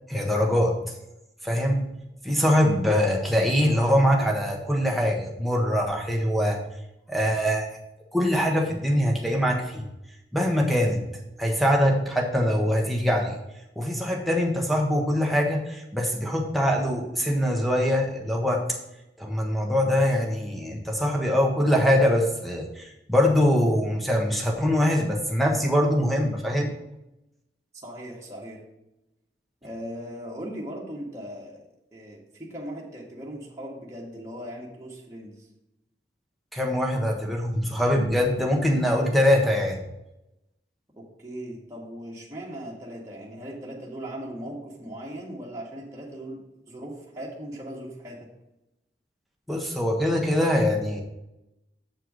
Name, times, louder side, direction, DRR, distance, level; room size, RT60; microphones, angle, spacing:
voice 1, 0.1-0.9 1.4-1.9 2.2-6.6 7.1-7.7 8.1-9.9 10.3-11.1 11.4-13.4 13.7-18.8 19.2-26.8 36.5-39.8 49.5-51.0, equal, ahead, 1 dB, 1.3 m, -23 dB
voice 2, 27.8-28.6 29.6-31.6 31.9-35.5 40.9-48.3, equal, 15° right, -5 dB, 1.6 m, -38 dB
7.7 x 4.5 x 6.2 m, 0.91 s
head